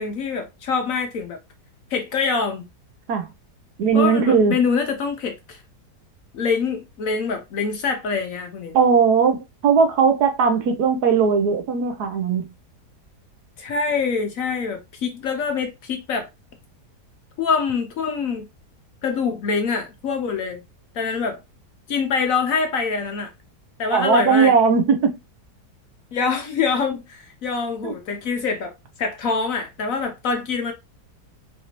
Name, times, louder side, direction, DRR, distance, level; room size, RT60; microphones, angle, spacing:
voice 1, 0.0-1.4 1.9-2.7 3.9-5.6 6.3-8.8 13.6-16.3 17.4-18.5 19.0-20.6 20.9-21.4 21.9-23.3 23.8-24.5 26.1-28.7 29.0-30.7, left 5 dB, 65° left, 1.0 m, -25 dB
voice 2, 3.8-4.6 8.7-12.5 23.9-25.2 27.8-27.9, right 5 dB, 70° right, 1.2 m, -18 dB
4.1 x 2.6 x 2.9 m
omnidirectional pair, 1.8 m